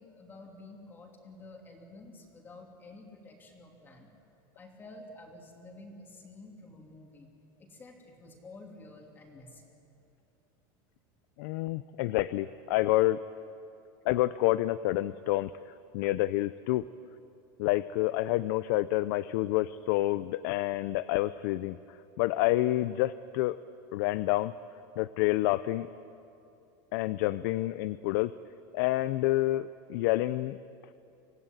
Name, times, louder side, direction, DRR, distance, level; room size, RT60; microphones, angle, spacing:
voice 1, 0.0-4.1 4.5-7.3 7.6-9.7, left 2 dB, 15° left, 1 dB, 3.0 m, -50 dB
voice 2, 11.4-13.2 14.0-16.9 17.6-21.8 22.2-23.6 23.9-24.5 25.0-25.9 26.9-28.3 28.7-30.6, left 16 dB, 65° left, 15 dB, 0.5 m, -28 dB
25.5 x 16.5 x 9.1 m, 2.7 s
supercardioid pair, 165°, 12 cm